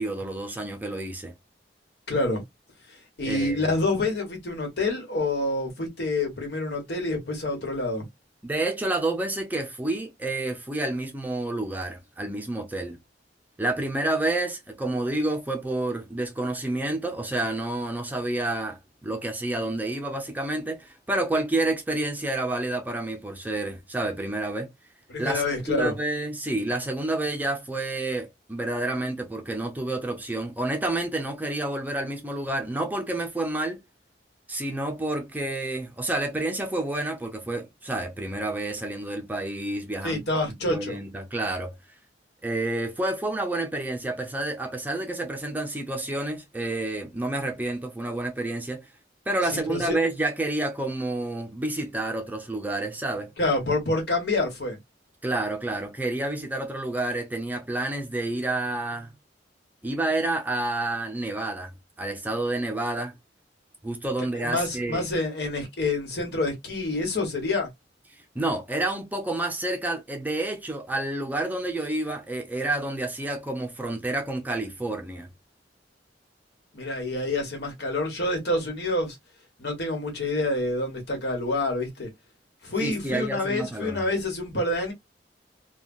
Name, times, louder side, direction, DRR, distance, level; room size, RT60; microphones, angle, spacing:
voice 1, 0.0-1.3 3.3-3.7 8.4-13.0 13.6-24.7 25.2-25.4 25.7-33.8 34.5-41.7 42.4-48.8 49.3-53.3 55.2-59.1 59.8-61.7 62.0-63.1 63.8-65.1 68.3-75.3 82.8-84.0, right 2 dB, 10° right, 0.5 m, -29 dB
voice 2, 2.1-2.4 3.2-8.0 25.1-25.9 40.0-41.0 49.5-50.0 53.4-54.8 64.3-67.7 76.7-79.2 79.6-82.1 82.6-84.9, left 2 dB, 65° left, 1.4 m, -27 dB
3.2 x 2.3 x 2.3 m
head